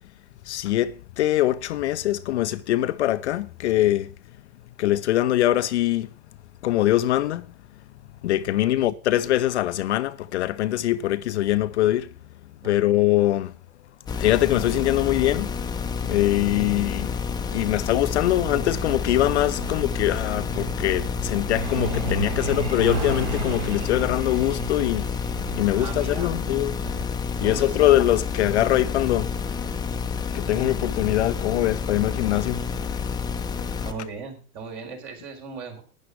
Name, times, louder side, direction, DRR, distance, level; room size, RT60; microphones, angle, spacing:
voice 1, 0.5-4.1 4.8-6.1 6.6-7.5 8.2-12.1 12.6-13.5 14.2-15.5 16.0-17.1 17.5-25.1 25.6-26.8 27.4-29.3 30.3-32.6, left 14 dB, 50° left, 0.5 m, -23 dB
voice 2, 8.7-9.2 12.6-13.0 19.6-19.9 25.7-26.3 26.8-27.1 27.4-28.2 33.8-35.8, right 5 dB, 45° right, 4.3 m, -39 dB
sound 1, 14.1-33.9, left 5 dB, 10° left, 0.7 m, -29 dB
Truck, 18.4-30.7 31.9-32.1 32.5-32.6 33.0-33.3 33.6-33.7 34.2-34.3, right 2 dB, 60° right, 4.9 m, -34 dB
11.5 x 9.8 x 4.6 m
figure-of-eight pair, 100°, 44 cm